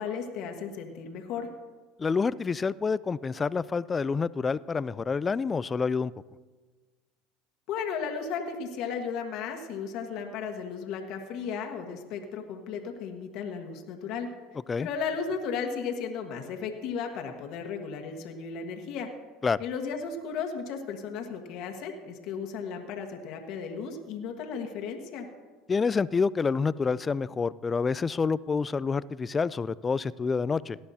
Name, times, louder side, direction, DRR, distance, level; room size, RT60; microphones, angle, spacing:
voice 1, 0.0-1.5 7.7-14.3 14.8-19.1 19.6-25.3, left 6 dB, 65° left, 2 dB, 1.5 m, -35 dB
voice 2, 2.0-6.1 14.7-14.9 19.4-19.6 25.7-30.8, left 5 dB, 25° left, 19 dB, 0.3 m, -28 dB
18.5 x 11.5 x 2.8 m, 1.4 s
supercardioid pair, 95°, 0 cm